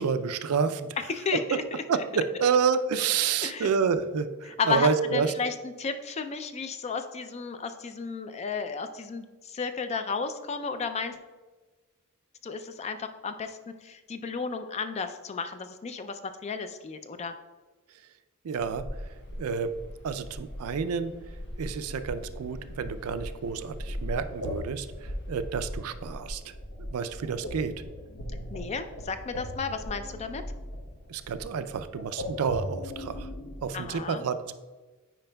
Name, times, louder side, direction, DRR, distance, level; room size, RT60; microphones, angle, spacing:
voice 1, 0.0-0.9 1.9-5.3 18.4-18.8 19.4-19.7 20.0-21.1 21.6-26.5 26.8-27.7 31.1-33.3 33.6-34.6, right 6 dB, 70° right, 11 dB, 0.4 m, -29 dB
voice 2, 1.0-1.8 3.4-3.7 4.5-11.2 12.4-17.3 28.5-30.4 33.7-34.3, left 5 dB, 30° left, 9 dB, 0.3 m, -33 dB
sound 1, 18.6-34.0, left 1 dB, 80° left, 1.0 m, -39 dB
Waves surf, 18.9-26.2, equal, 55° left, 1.2 m, -47 dB
8.9 x 4.9 x 2.2 m, 1.3 s
head